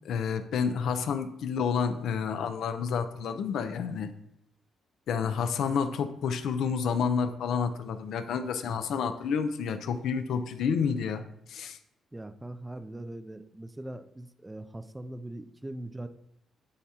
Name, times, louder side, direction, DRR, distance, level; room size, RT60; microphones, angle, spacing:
voice 1, 0.0-4.1 5.1-11.2 11.5-11.8, left 6 dB, 75° left, 9 dB, 0.5 m, -29 dB
voice 2, 12.1-16.1, right 1 dB, 15° right, 11 dB, 0.4 m, -41 dB
9.7 x 3.5 x 2.9 m, 0.74 s
cardioid pair, 90°, 0 cm